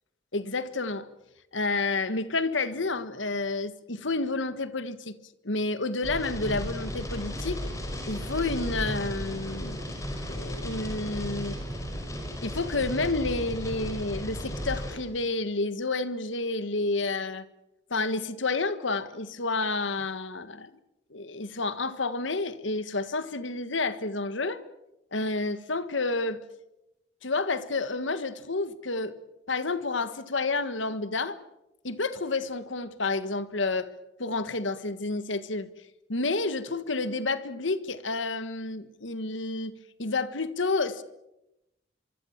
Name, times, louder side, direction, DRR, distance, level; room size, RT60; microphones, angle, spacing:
voice 1, 0.3-1.1 1.5-5.2 5.4-7.7 8.0-9.8 10.3-11.6 12.4-17.4 17.9-20.7 21.1-24.6 25.1-26.4 27.2-29.1 29.5-31.4 31.8-33.9 34.2-35.7 36.1-41.0, left 3 dB, 75° left, 1.6 m, -30 dB
sound 1, 6.0-15.0, equal, 15° left, 5.3 m, -35 dB
25.5 x 25.0 x 7.3 m
head